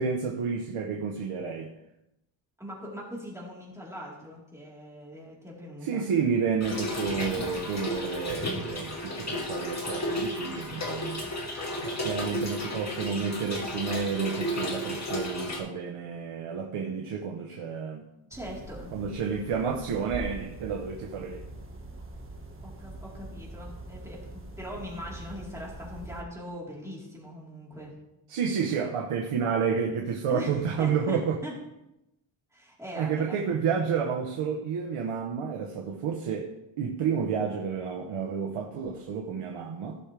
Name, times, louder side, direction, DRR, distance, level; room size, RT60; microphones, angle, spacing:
voice 1, 0.0-1.7 5.8-11.2 11.8-18.0 18.9-21.4 28.3-31.4 32.9-36.5 36.8-40.0, right 6 dB, 80° right, 1.2 m, -30 dB
voice 2, 2.6-6.1 18.3-19.0 22.6-27.9 30.3-31.5 32.5-33.4, equal, 5° right, 3.9 m, -41 dB
Trickle dribble / Fill (with liquid), 6.6-15.6, left 1 dB, 30° left, 2.2 m, -33 dB
sound 1, 18.3-26.2, right 2 dB, 25° right, 1.7 m, -43 dB
17.0 x 6.4 x 3.4 m
cardioid pair, 105°, 50 cm